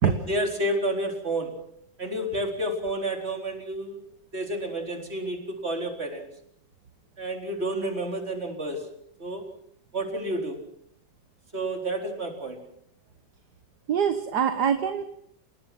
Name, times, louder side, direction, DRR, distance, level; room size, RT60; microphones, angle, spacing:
voice 1, 0.0-1.5 2.0-4.0 4.3-6.3 7.2-8.8 9.2-9.4 9.9-10.6 11.5-12.6, right 1 dB, 35° right, 2 dB, 4.4 m, -30 dB
voice 2, 13.9-15.0, right 7 dB, 60° right, 7 dB, 1.9 m, -24 dB
29.5 x 19.5 x 6.0 m, 0.69 s
omnidirectional pair, 2.0 m